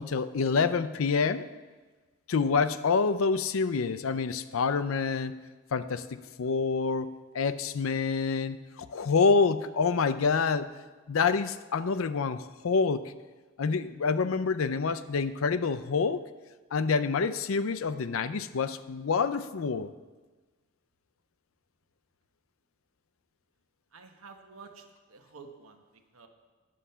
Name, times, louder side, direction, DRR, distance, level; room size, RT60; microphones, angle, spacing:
voice 1, 0.0-1.5 2.3-5.3 5.7-7.1 7.3-10.7 11.1-13.1 13.6-16.2 16.7-19.9, left 5 dB, 75° left, 13 dB, 0.5 m, -27 dB
voice 2, 23.9-26.3, right 4 dB, 85° right, 5 dB, 1.1 m, -51 dB
10.0 x 7.4 x 5.6 m, 1.3 s
head